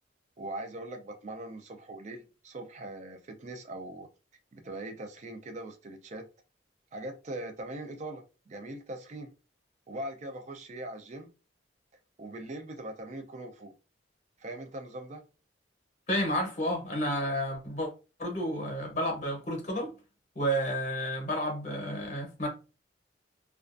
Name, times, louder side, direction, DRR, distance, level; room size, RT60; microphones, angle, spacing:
voice 1, 0.4-4.1 4.5-6.3 6.9-9.3 9.9-11.3 12.2-13.7 14.4-15.2, right 1 dB, 40° right, 0.4 m, -41 dB
voice 2, 16.1-17.9 18.2-19.9 20.4-22.5, equal, 40° left, 0.8 m, -31 dB
2.3 x 2.2 x 2.5 m
head